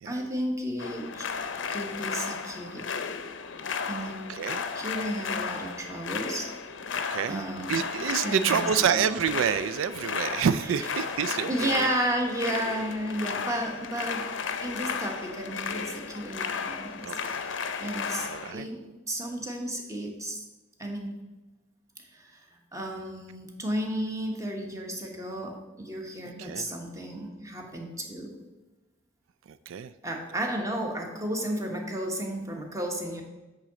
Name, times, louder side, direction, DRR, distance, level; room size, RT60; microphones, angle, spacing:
voice 1, 0.0-1.2 1.7-3.0 3.9-4.4 4.7-6.5 7.3-7.9 8.2-8.6 8.9-9.1 11.5-14.3 14.6-17.1 17.4-20.4 20.8-21.2 22.1-22.5 22.7-28.4 30.0-33.2, right 1 dB, 15° right, 2 dB, 1.2 m, -33 dB
sound 1, 0.8-18.5, left 6 dB, 65° left, 0.6 m, -34 dB
voice 2, 4.0-4.6 6.9-11.9 17.0-17.4 18.2-18.7 26.4-26.7 29.5-29.9, right 8 dB, 90° right, 13 dB, 0.3 m, -28 dB
8.0 x 3.9 x 6.8 m, 1.1 s
head